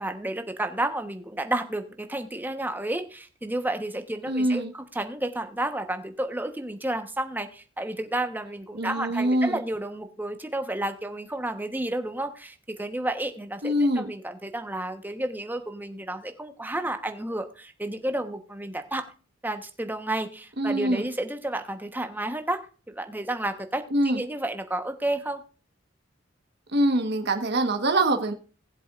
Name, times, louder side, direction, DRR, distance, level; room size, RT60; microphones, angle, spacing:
voice 1, 0.0-19.0 19.4-22.6 22.9-25.4, right 1 dB, 10° right, 7 dB, 1.1 m, -31 dB
voice 2, 4.3-4.7 8.7-9.6 13.6-14.1 20.6-21.1 23.9-24.2 26.7-28.3, right 1 dB, 60° right, 5 dB, 1.3 m, -24 dB
19.0 x 7.8 x 2.5 m, 0.37 s
head